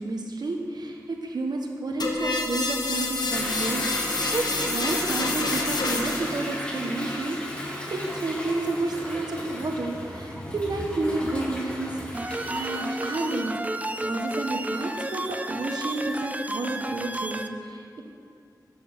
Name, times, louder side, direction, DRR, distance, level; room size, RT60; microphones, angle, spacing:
voice 1, 0.0-13.5 14.0-18.0, right 2 dB, 80° right, 2 dB, 1.2 m, -31 dB
sound 1, 2.0-6.4, left 3 dB, 80° left, 1.2 m, -28 dB
Toilet flush / Drip / Trickle dribble, 3.3-13.4, equal, 15° left, 1.7 m, -34 dB
sound 2, 12.1-17.5, right 1 dB, 20° right, 0.5 m, -32 dB
13.5 x 6.2 x 6.0 m, 2.3 s
wide cardioid pair, 90°, 7 cm